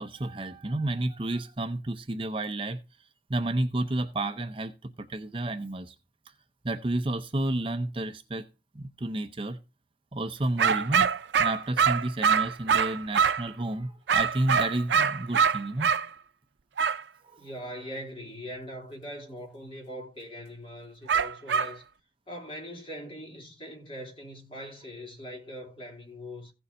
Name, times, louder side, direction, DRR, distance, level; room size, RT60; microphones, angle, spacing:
voice 1, 0.0-2.8 3.3-6.0 6.6-8.5 8.7-9.6 10.1-11.1 11.4-15.9 17.2-17.4, right 1 dB, 30° right, 0.6 m, -31 dB
sound 1, 10.6-13.5 14.1-16.1 16.8-17.0 21.1-21.7, right 6 dB, 85° right, 0.5 m, -24 dB
voice 2, 17.4-21.8 22.3-26.5, equal, 30° left, 2.8 m, -41 dB
16.0 x 7.0 x 2.6 m
head